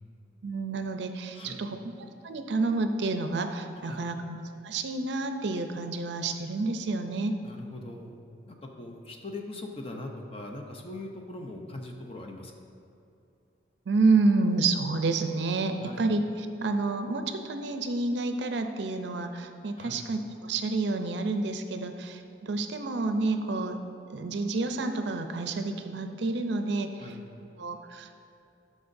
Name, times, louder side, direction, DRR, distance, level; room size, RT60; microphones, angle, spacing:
voice 1, 0.4-4.4 4.6-7.3 13.9-23.8 24.1-27.0 27.6-28.2, right 3 dB, 65° right, 7 dB, 0.5 m, -29 dB
voice 2, 7.4-8.2 8.5-12.5 15.8-16.0 19.8-20.0 27.0-27.2, left 2 dB, 30° left, 2 dB, 0.6 m, -41 dB
12.0 x 6.2 x 2.6 m, 2.6 s
head